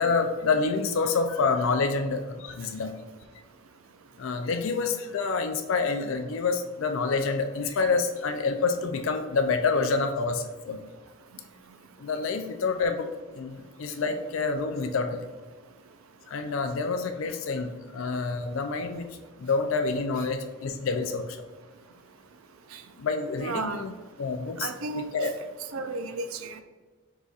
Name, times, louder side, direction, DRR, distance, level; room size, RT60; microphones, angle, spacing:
voice 1, 0.0-2.9 4.2-10.8 12.0-13.1 13.3-15.3 16.3-19.0 19.4-21.4 23.0-25.3, left 4 dB, 70° left, 6 dB, 0.4 m, -27 dB
voice 2, 23.4-23.8 24.6-25.1 25.7-26.6, right 3 dB, 80° right, 9 dB, 0.4 m, -33 dB
4.7 x 4.0 x 2.4 m, 1.3 s
head